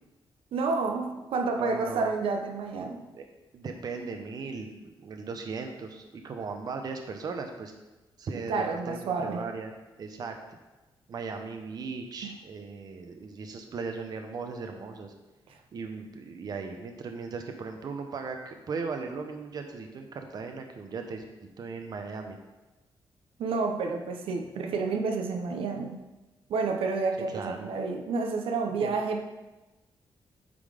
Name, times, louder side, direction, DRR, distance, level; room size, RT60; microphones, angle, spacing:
voice 1, 0.5-3.1 8.5-9.4 12.2-12.3 23.4-26.0 26.5-29.2, right 4 dB, 80° right, 4 dB, 0.7 m, -29 dB
voice 2, 1.5-2.1 3.1-3.3 3.5-7.7 8.2-10.4 11.1-15.1 15.7-22.4 27.3-27.8 28.8-29.0, right 4 dB, 45° right, 5 dB, 0.7 m, -37 dB
8.5 x 3.9 x 4.9 m, 1.1 s
wide cardioid pair, 155°, 9 cm